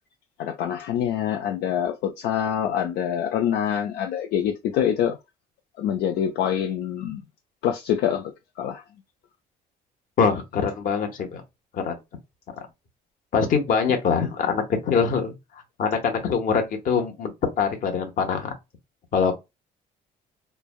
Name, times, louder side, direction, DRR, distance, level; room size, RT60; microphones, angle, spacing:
voice 1, 0.4-5.2 5.8-7.2 7.6-8.3 8.6-8.8, left 9 dB, 75° left, 0.4 m, -25 dB
voice 2, 10.2-11.4 11.7-12.0 13.3-15.3 15.8-17.3 17.6-18.5 19.1-19.3, left 6 dB, 55° left, 0.9 m, -23 dB
3.2 x 2.1 x 2.3 m
cardioid pair, 110°, 17 cm